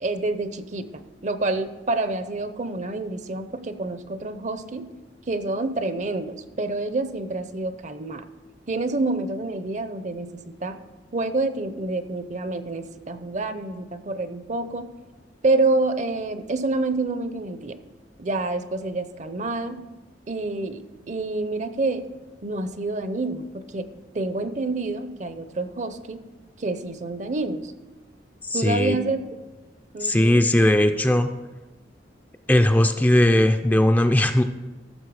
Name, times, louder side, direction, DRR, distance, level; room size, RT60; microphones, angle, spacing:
voice 1, 0.0-4.9 5.3-8.3 8.7-10.8 11.1-14.9 15.4-17.8 18.2-19.8 20.3-22.1 22.4-26.2 26.6-27.7 28.5-29.3 29.9-30.5, right 2 dB, 40° right, 11 dB, 0.6 m, -28 dB
voice 2, 28.4-28.9 30.0-31.3 32.5-34.4, left 1 dB, 10° left, 6 dB, 0.4 m, -18 dB
14.0 x 6.6 x 4.8 m, 1.2 s
head